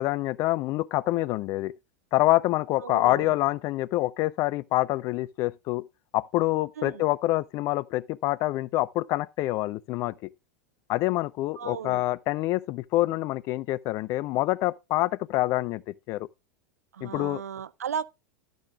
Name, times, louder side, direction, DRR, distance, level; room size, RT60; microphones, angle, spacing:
voice 1, 0.0-1.7 2.1-5.8 6.1-10.3 10.9-16.3 17.0-17.4, left 17 dB, 40° left, 0.4 m, -26 dB
voice 2, 2.8-3.3 6.8-7.0 11.6-12.0 17.0-18.1, right 7 dB, 70° right, 0.4 m, -35 dB
11.5 x 9.2 x 2.4 m
figure-of-eight pair, 85°, 9 cm